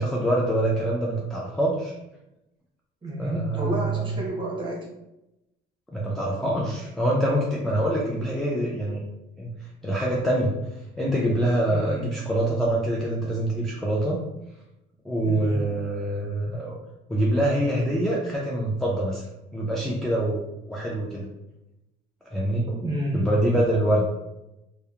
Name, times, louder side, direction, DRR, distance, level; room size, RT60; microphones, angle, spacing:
voice 1, 0.0-1.9 3.2-4.2 5.9-9.0 9.4-9.5 9.8-10.5 11.0-14.2 15.0-16.7 17.1-19.2 19.5-21.3 22.3-22.7 23.1-24.0, right 1 dB, ahead, -5 dB, 0.4 m, -25 dB
voice 2, 3.0-4.9 11.7-12.1 15.2-15.7 22.7-23.3, right 1 dB, 25° right, -3 dB, 0.9 m, -30 dB
2.8 x 2.1 x 2.3 m, 0.92 s
cardioid pair, 100°, 19 cm